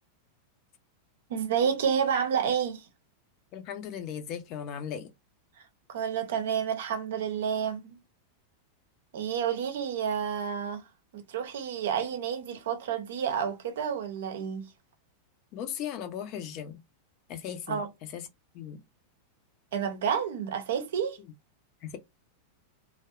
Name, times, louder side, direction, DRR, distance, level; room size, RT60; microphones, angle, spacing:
voice 1, 1.3-2.9 5.9-8.0 9.1-10.9 11.1-14.7 17.7-17.9 19.7-21.2, right 7 dB, 60° right, 0.6 m, -30 dB
voice 2, 3.5-5.1 15.5-16.8 17.3-17.8 18.1-18.3 18.5-18.8 21.8-22.0, left 9 dB, 40° left, 0.5 m, -37 dB
2.7 x 2.1 x 2.2 m
figure-of-eight pair, 90°, 0 cm